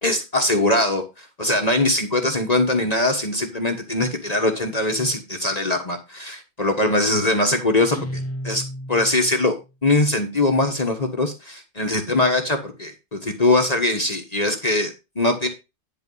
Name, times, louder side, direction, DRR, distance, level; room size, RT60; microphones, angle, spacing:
voice 1, 0.0-8.6 8.9-9.6 9.8-15.5, left 2 dB, 35° left, 4 dB, 1.3 m, -22 dB
Guitar, 7.9-9.6, equal, 15° left, 0.9 m, -33 dB
11.0 x 4.2 x 5.4 m, 0.26 s
omnidirectional pair, 1.2 m